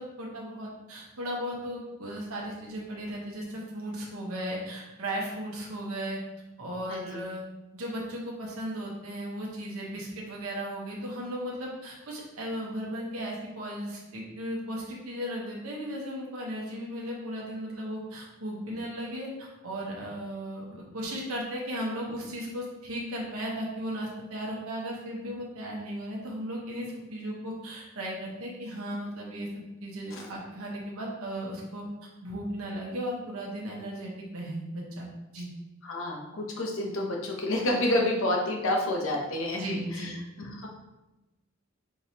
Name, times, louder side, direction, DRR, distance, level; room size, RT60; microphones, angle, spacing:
voice 1, 0.0-6.2 6.6-7.4 7.7-29.5 29.8-35.1 35.3-35.5 39.5-40.1, equal, 85° right, -3 dB, 1.0 m, -36 dB
voice 2, 6.9-7.2 30.1-30.3 35.8-39.6 39.9-40.7, left 1 dB, 65° left, 1 dB, 0.8 m, -29 dB
4.7 x 3.9 x 2.8 m, 1.0 s
head